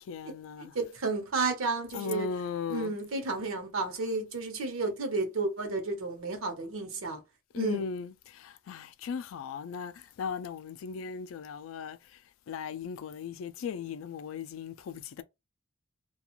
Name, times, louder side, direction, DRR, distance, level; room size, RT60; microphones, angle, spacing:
voice 1, 0.1-0.7 1.9-2.9 7.5-8.1 8.4-9.9 10.2-12.0 12.5-15.2, left 6 dB, 75° left, 0.3 m, -37 dB
voice 2, 0.7-2.3 2.7-7.2 7.5-7.9, right 3 dB, 85° right, 0.8 m, -32 dB
2.4 x 2.3 x 2.9 m
head